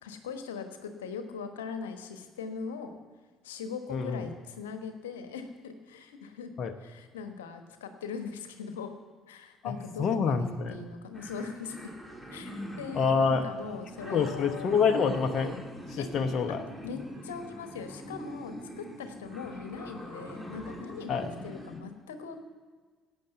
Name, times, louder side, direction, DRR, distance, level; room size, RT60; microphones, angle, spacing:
voice 1, 0.0-3.0 3.4-6.5 6.8-8.9 9.3-11.9 12.3-14.9 15.9-16.1 16.5-16.6 16.8-22.4, left 5 dB, 70° left, 8 dB, 1.1 m, -40 dB
voice 2, 3.9-4.2 6.6-6.7 9.6-10.8 12.9-13.4 14.1-15.6 15.9-16.6 21.1-21.3, left 5 dB, 45° left, 6 dB, 0.9 m, -27 dB
sound 1, 11.1-21.8, equal, 5° right, 2.6 m, -43 dB
17.0 x 8.7 x 6.8 m, 1.5 s
figure-of-eight pair, 50°, 0 cm